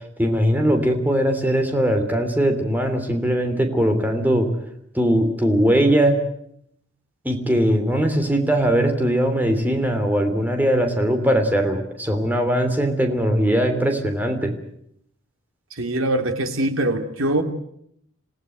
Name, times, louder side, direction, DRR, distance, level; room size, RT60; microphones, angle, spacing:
voice 1, 0.2-4.5 4.9-6.2 7.2-14.5, equal, 10° right, 5 dB, 3.1 m, -20 dB
voice 2, 15.7-17.4, right 1 dB, 80° right, 7 dB, 2.8 m, -23 dB
27.5 x 17.5 x 9.2 m, 0.72 s
head